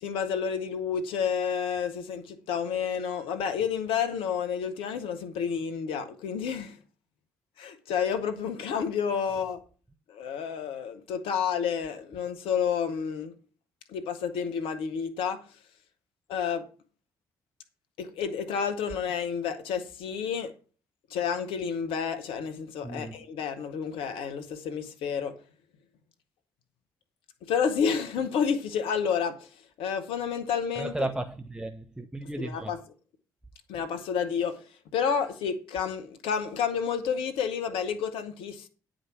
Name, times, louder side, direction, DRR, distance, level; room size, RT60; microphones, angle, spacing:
voice 1, 0.0-6.8 7.6-9.6 10.1-13.3 13.9-15.4 16.3-16.7 18.0-20.5 21.1-25.4 27.4-29.5 29.8-30.9 32.4-32.8 33.7-34.6 34.9-38.7, left 7 dB, 65° left, 1.1 m, -30 dB
voice 2, 22.8-23.2 30.7-32.7 33.7-33.8, right 2 dB, 10° right, 0.9 m, -34 dB
9.7 x 5.1 x 7.2 m
figure-of-eight pair, 40°, 10 cm